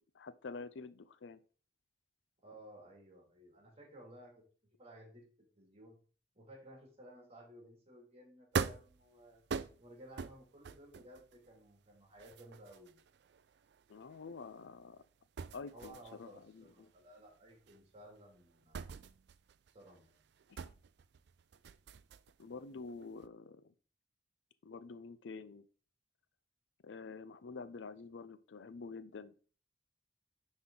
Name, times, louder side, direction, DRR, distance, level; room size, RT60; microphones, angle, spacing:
voice 1, 0.1-1.4 13.9-15.0 15.5-16.9 20.5-20.6 22.4-23.7 24.6-25.7 26.8-29.3, left 4 dB, 85° left, 0.5 m, -48 dB
voice 2, 2.4-4.4 4.8-6.0 6.3-9.4 9.8-13.0 15.7-19.0 19.7-20.2, right 1 dB, 35° right, 2.3 m, -56 dB
sound 1, 8.5-15.1 15.4-22.5 22.8-23.3, right 5 dB, 65° right, 0.4 m, -43 dB
9.5 x 4.2 x 3.8 m
head